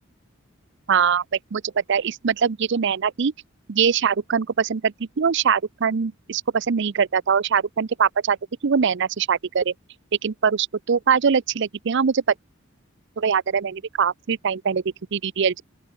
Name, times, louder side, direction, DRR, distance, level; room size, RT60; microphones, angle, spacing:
voice 1, 0.9-1.2 1.5-3.3 3.7-8.4 8.6-9.7 10.2-12.2 13.2-14.8 15.1-15.6, right 6 dB, 65° right, 0.6 m, -22 dB
open air
head